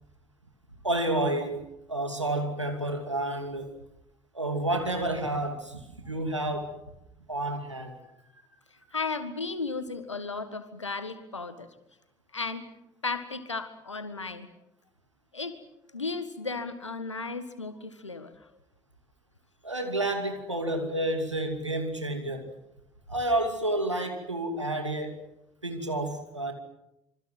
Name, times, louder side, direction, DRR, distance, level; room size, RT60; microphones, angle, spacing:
voice 1, 0.8-1.6 1.9-3.7 4.3-6.8 7.3-7.9 19.6-22.6 23.1-25.2 25.6-26.5, right 1 dB, 90° right, 2.7 m, -30 dB
voice 2, 8.9-11.7 12.3-12.7 13.0-14.5 15.3-15.6 15.9-18.3, left 4 dB, 85° left, 1.7 m, -34 dB
27.0 x 25.0 x 7.5 m
figure-of-eight pair, 50°, 15 cm